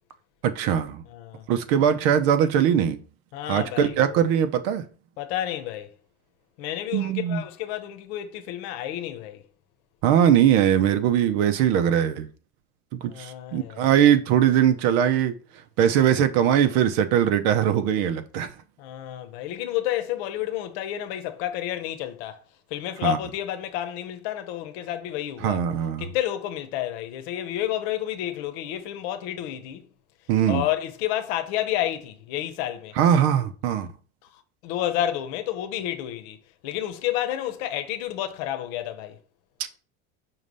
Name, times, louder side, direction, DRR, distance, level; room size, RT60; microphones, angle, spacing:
voice 1, 0.4-1.0 1.5-3.0 3.5-4.8 6.9-7.4 10.0-12.3 12.9-15.4 15.8-18.5 23.0-23.2 25.4-26.0 30.3-30.6 33.0-33.9, right 9 dB, 70° right, 0.9 m, -21 dB
voice 2, 1.1-1.4 3.3-4.2 5.2-5.9 6.6-9.4 13.1-13.9 18.8-22.4 22.7-25.6 26.0-29.9 30.5-32.9 34.6-36.4 36.6-39.2, left 12 dB, 90° left, 1.0 m, -30 dB
5.8 x 3.2 x 5.3 m
cardioid pair, 170°, 31 cm